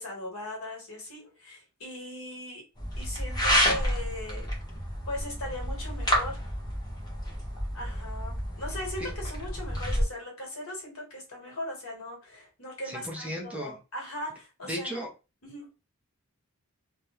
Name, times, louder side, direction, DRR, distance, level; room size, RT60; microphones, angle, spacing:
voice 1, 0.0-2.6 3.0-4.5 5.1-6.4 7.7-15.0 15.4-15.6, left 1 dB, 65° left, -1 dB, 1.2 m, -39 dB
sound 1, 2.8-10.0, equal, 20° left, 0.8 m, -30 dB
voice 2, 12.8-13.7 14.7-15.1, equal, 5° right, 0 dB, 0.4 m, -35 dB
2.3 x 2.1 x 2.9 m, 0.29 s
head